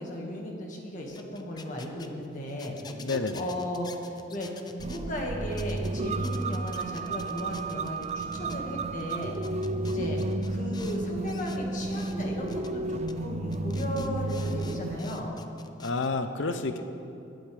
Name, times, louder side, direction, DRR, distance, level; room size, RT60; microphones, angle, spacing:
voice 1, 0.0-9.4 9.9-15.3, left 1 dB, 40° left, -1 dB, 1.9 m, -36 dB
sound 1, 1.1-5.0 5.5-5.9 6.2-8.6 9.0-11.0 11.3-12.2 12.5-12.7 13.1-13.2 13.5-16.1, left 4 dB, 20° left, 0.6 m, -48 dB
voice 2, 2.9-3.5 15.8-16.8, left 3 dB, 70° left, 9 dB, 0.7 m, -30 dB
sound 2, 4.8-15.0, right 2 dB, 35° right, 0.4 m, -32 dB
21.0 x 11.5 x 3.5 m, 2.7 s
head